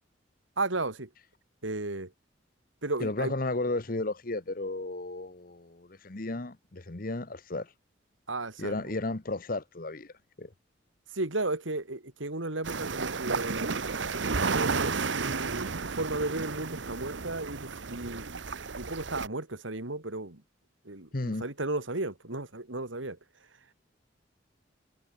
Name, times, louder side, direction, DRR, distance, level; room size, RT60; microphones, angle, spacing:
voice 1, 0.6-1.1 1.6-2.1 2.8-3.3 8.3-8.9 11.1-13.7 14.5-18.4 18.7-20.4 20.8-23.2, right 2 dB, 90° right, 3.0 m, -34 dB
voice 2, 3.0-7.7 8.6-10.1 10.4-10.5 21.1-21.4, left 2 dB, 45° left, 1.2 m, -33 dB
sound 1, 12.6-19.3, right 4 dB, 70° right, 1.1 m, -32 dB
head